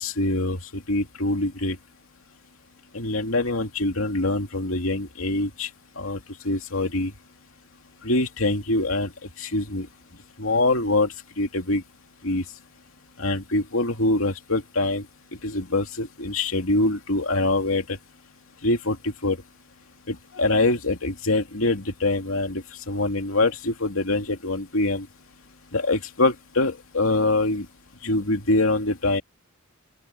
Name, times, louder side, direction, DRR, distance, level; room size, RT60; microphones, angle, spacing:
voice 1, 0.0-1.8 2.9-5.7 6.0-7.1 8.0-9.1 9.4-9.9 10.4-11.8 12.2-12.4 13.2-15.1 15.4-18.0 18.6-19.4 20.1-25.1 25.7-27.7 28.0-29.2, left 2 dB, 70° left, 2.8 m, -24 dB
open air
head